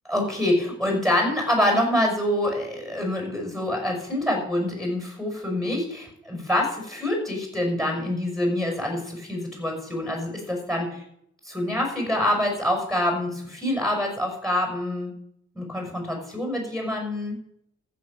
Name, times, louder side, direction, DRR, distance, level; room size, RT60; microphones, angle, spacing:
voice 1, 0.1-11.0 11.4-15.1 15.5-17.4, left 1 dB, ahead, 1 dB, 5.8 m, -26 dB
14.5 x 7.1 x 6.7 m, 0.72 s
cardioid pair, 90°, 30 cm